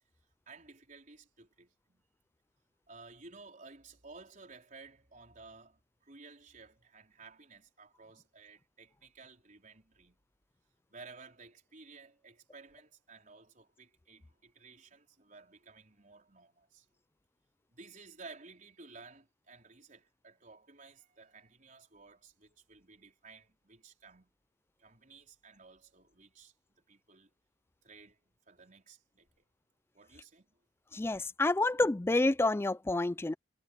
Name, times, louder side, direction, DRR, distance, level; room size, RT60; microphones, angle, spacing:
voice 1, 0.5-2.0 2.9-10.2 10.9-16.9 17.7-24.3 24.8-27.3 27.8-29.4 29.9-30.5, right 4 dB, 40° right, 4.3 m, -55 dB
voice 2, 30.9-33.3, left 2 dB, 15° left, 0.3 m, -28 dB
head